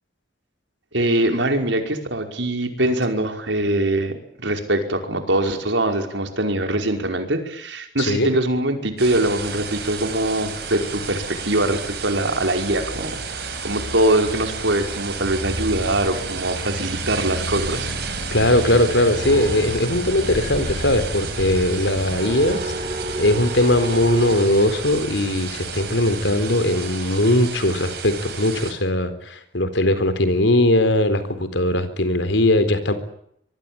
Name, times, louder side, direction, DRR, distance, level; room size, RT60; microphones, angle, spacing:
voice 1, 0.9-17.9, right 1 dB, 80° right, 5 dB, 5.3 m, -23 dB
sound 1, 9.0-28.7, right 3 dB, 60° right, 6.9 m, -31 dB
voice 2, 18.3-32.9, left 1 dB, 85° left, 11 dB, 4.1 m, -20 dB
sound 2, 19.2-24.4, right 1 dB, 40° right, 3.1 m, -32 dB
25.0 x 23.5 x 8.9 m, 0.72 s
head